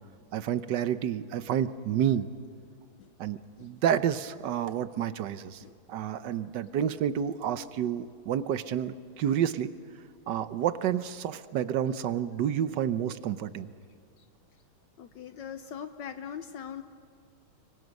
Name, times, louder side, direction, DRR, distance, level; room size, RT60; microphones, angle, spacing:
voice 1, 0.3-2.3 3.2-5.6 5.9-9.7 10.3-13.7, right 9 dB, 65° right, 13 dB, 1.3 m, -29 dB
voice 2, 15.0-16.8, left 8 dB, 70° left, 9 dB, 1.4 m, -40 dB
25.5 x 23.5 x 5.3 m, 2.4 s
omnidirectional pair, 2.2 m